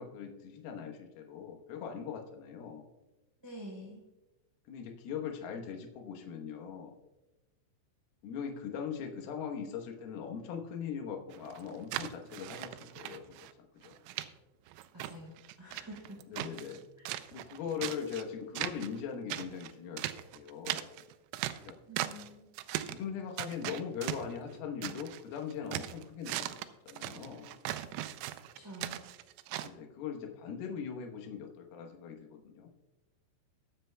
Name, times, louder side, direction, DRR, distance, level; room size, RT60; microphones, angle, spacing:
voice 1, 0.0-2.9 4.7-7.0 8.2-14.0 16.3-16.8 17.3-20.0 20.3-20.9 21.6-21.8 22.8-27.6 29.6-32.7, left 7 dB, 75° left, 2 dB, 2.3 m, -41 dB
voice 2, 3.4-4.0 14.9-16.2 17.0-17.1 21.8-22.5 28.5-29.0, equal, 10° right, -4 dB, 1.4 m, -47 dB
sound 1, 11.3-13.5 13.8-14.3 14.7-16.8 17.1-18.2 18.6-19.0 19.3-22.3 22.6-23.0 23.4-25.2 25.5-29.7, right 14 dB, 90° right, 3.2 m, -39 dB
21.5 x 7.8 x 2.2 m, 1.0 s
omnidirectional pair, 5.8 m